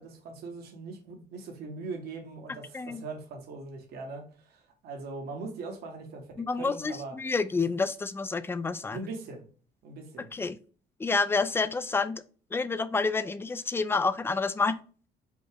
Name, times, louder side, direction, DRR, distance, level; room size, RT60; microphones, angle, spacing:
voice 1, 0.0-7.2 8.9-9.4 9.8-10.3, right 3 dB, 70° right, 2 dB, 1.3 m, -41 dB
voice 2, 6.4-9.0 10.2-10.6 11.0-12.2 12.5-14.8, left 4 dB, 15° left, 13 dB, 0.4 m, -29 dB
5.1 x 2.3 x 3.4 m, 0.40 s
cardioid pair, 110°, 17 cm